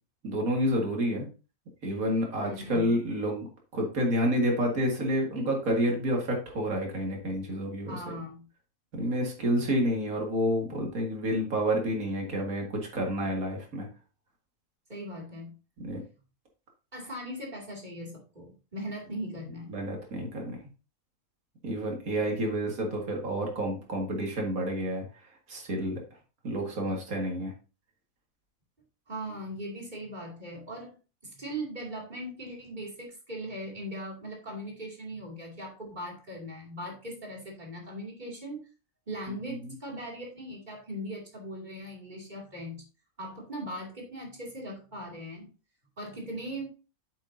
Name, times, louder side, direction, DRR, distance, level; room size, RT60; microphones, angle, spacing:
voice 1, 0.2-1.3 1.8-3.5 3.7-8.0 8.9-13.9 15.8-16.0 19.7-20.6 21.6-25.0 25.5-26.0 26.4-27.5 39.5-39.6, equal, 85° right, 1 dB, 2.3 m, -29 dB
voice 2, 2.4-2.9 7.9-8.5 14.9-15.5 16.9-19.8 29.1-30.9 31.2-38.7 39.1-42.8 43.2-45.5 46.0-46.7, equal, 35° right, -1 dB, 2.7 m, -39 dB
8.0 x 7.3 x 2.7 m, 0.33 s
omnidirectional pair, 1.4 m